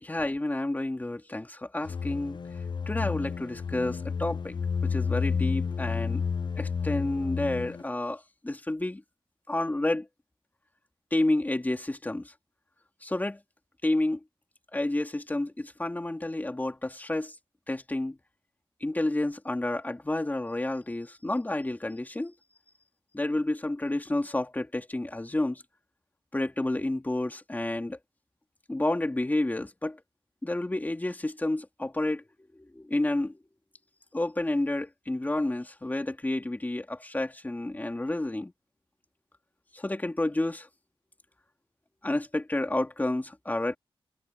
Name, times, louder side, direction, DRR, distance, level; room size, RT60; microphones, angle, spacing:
voice 1, 0.0-2.4 2.9-4.6 4.8-6.2 6.6-9.0 9.5-10.1 11.1-12.3 13.0-13.4 13.8-14.2 14.7-17.3 17.7-18.2 18.8-22.3 23.1-25.6 26.3-28.0 28.7-30.0 30.4-32.2 32.7-33.3 34.1-38.5 39.7-40.7 42.0-43.8, left 2 dB, 20° left, 3.1 m, -30 dB
sound 1, 1.8-7.8, left 6 dB, 55° left, 0.8 m, -31 dB
wide cardioid pair, 120°, 9 cm